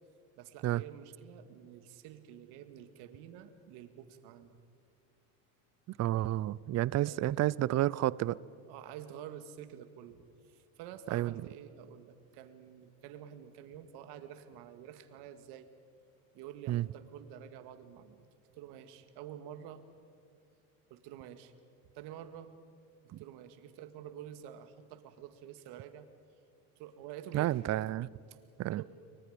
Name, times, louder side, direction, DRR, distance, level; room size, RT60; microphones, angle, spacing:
voice 1, 0.4-4.6 7.0-7.4 8.7-15.7 16.3-18.3 18.5-19.8 20.9-21.5 21.9-22.5 23.0-26.1 26.8-27.6 28.3-28.4 28.7-28.8, right 10 dB, 70° right, 10 dB, 2.1 m, -49 dB
voice 2, 6.0-8.4 11.1-11.3 16.7-16.9 23.1-23.2 27.3-28.1 28.6-28.8, right 14 dB, 40° right, 22 dB, 0.6 m, -30 dB
30.0 x 23.5 x 5.2 m, 2.4 s
supercardioid pair, 90°, 42 cm